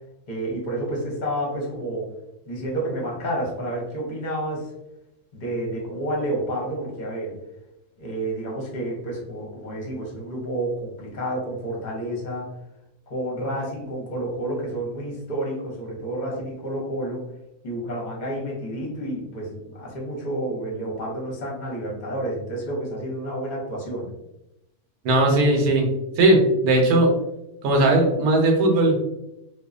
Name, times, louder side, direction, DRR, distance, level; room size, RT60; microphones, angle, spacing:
voice 1, 0.3-2.1 2.5-4.7 5.3-7.4 8.0-12.5 13.1-17.2 17.6-24.1, right 1 dB, 40° left, -2 dB, 0.7 m, -30 dB
voice 2, 25.0-25.9 26.2-27.1 27.6-28.9, right 2 dB, 70° right, 1 dB, 1.1 m, -18 dB
2.9 x 2.1 x 2.4 m, 0.88 s
omnidirectional pair, 1.7 m